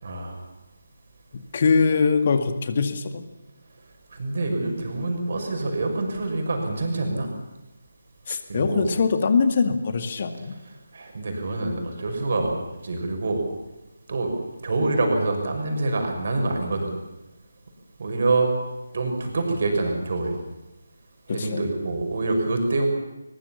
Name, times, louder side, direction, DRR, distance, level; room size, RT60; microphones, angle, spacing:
voice 1, 0.0-0.3 4.1-7.3 8.5-8.9 10.9-12.5 12.8-13.4 14.1-14.3 14.6-16.9 18.0-18.5 18.9-20.3 21.3-22.9, right 2 dB, 45° right, 3 dB, 5.8 m, -26 dB
voice 2, 1.3-3.2 8.3-10.6 21.3-21.7, left 5 dB, 40° left, 9 dB, 2.1 m, -22 dB
21.5 x 21.5 x 7.3 m, 1.0 s
figure-of-eight pair, 150°, 0 cm